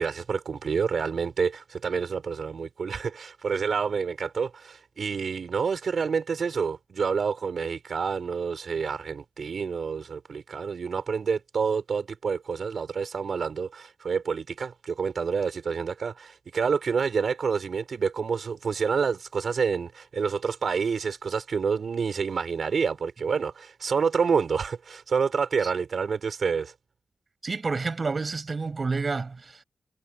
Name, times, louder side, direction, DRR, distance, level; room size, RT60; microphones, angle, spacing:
voice 1, 0.0-26.7, right 5 dB, 75° right, 4.3 m, -28 dB
voice 2, 27.4-29.6, right 4 dB, 50° right, 7.5 m, -29 dB
cardioid pair, 70°, 0 cm